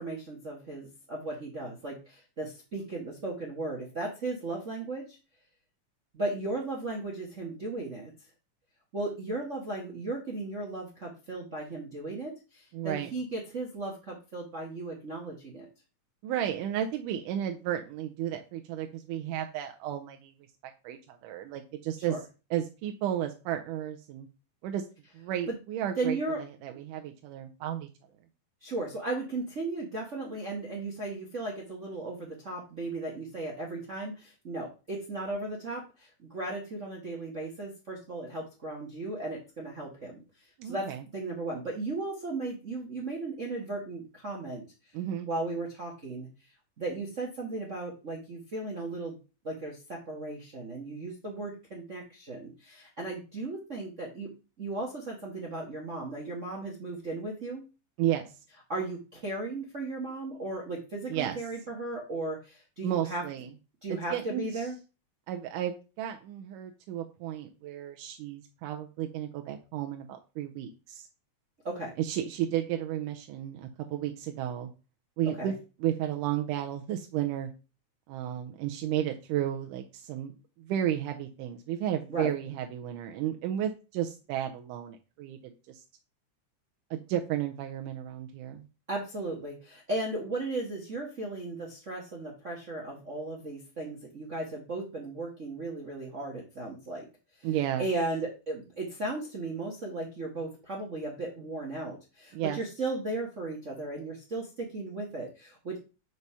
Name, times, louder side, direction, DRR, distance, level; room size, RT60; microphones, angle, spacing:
voice 1, 0.0-5.2 6.1-8.1 8.9-15.7 22.1-22.2 25.5-25.6 26.0-26.4 28.6-40.2 40.6-44.6 45.2-46.3 46.8-49.2 49.4-54.3 54.6-57.6 58.7-63.2 63.8-64.8 71.6-71.9 75.2-75.5 82.1-82.3 88.9-97.0 97.4-97.5 97.8-105.8, right 2 dB, 55° right, -1 dB, 0.8 m, -36 dB
voice 2, 12.7-13.1 16.2-20.3 20.8-22.2 22.5-24.3 24.6-24.8 25.1-27.9 40.6-41.0 44.9-45.3 58.0-58.3 61.1-61.4 62.8-63.5 63.9-64.7 65.3-71.1 72.0-74.7 75.2-75.5 75.8-77.5 78.1-80.3 80.6-85.8 86.9-88.7 97.4-97.9 102.3-102.6, right 11 dB, 90° right, 4 dB, 2.2 m, -33 dB
5.4 x 4.7 x 5.4 m, 0.31 s
omnidirectional pair, 3.6 m